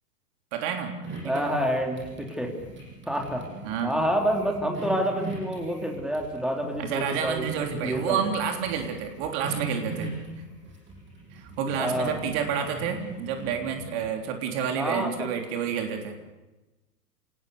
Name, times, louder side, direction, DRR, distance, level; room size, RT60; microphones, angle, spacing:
voice 1, 0.5-0.9 1.2-1.5 3.6-3.9 6.8-10.2 11.3-16.2, right 7 dB, 40° right, 4 dB, 3.6 m, -29 dB
sound 1, 1.0-14.1, right 2 dB, 25° right, 7.2 m, -41 dB
voice 2, 1.2-2.5 3.1-3.5 3.8-7.5 7.8-8.2 11.7-12.3 14.8-15.3, equal, ahead, 2 dB, 3.2 m, -28 dB
27.5 x 19.5 x 6.8 m, 1.0 s
figure-of-eight pair, 105°, 47 cm